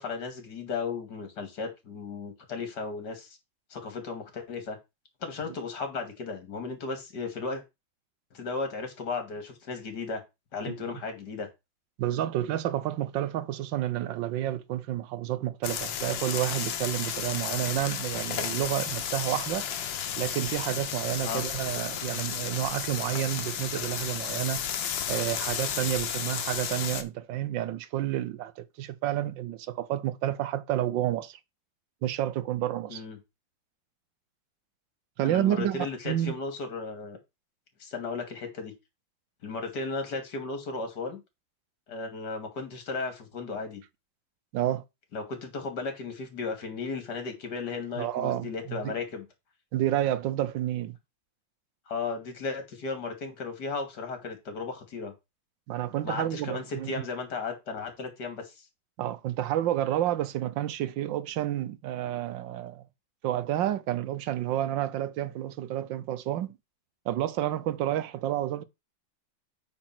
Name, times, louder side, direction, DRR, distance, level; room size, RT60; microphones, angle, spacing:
voice 1, 0.0-3.4 3.7-4.8 5.2-7.6 8.3-10.2 10.5-11.5 21.2-21.4 32.9-33.2 35.2-37.2 37.8-38.7 39.4-41.2 41.9-43.8 45.1-49.3 51.9-55.1 56.0-58.7, left 4 dB, 60° left, 2.6 m, -35 dB
voice 2, 12.0-24.6 25.1-31.4 32.0-33.0 35.2-36.3 44.5-44.8 48.0-48.9 49.7-51.0 55.7-57.0 59.0-62.9 63.2-66.6 67.1-68.6, right 12 dB, 75° right, 1.4 m, -30 dB
sound 1, 15.6-27.0, left 9 dB, 80° left, 1.7 m, -33 dB
8.7 x 4.1 x 5.9 m
omnidirectional pair, 2.1 m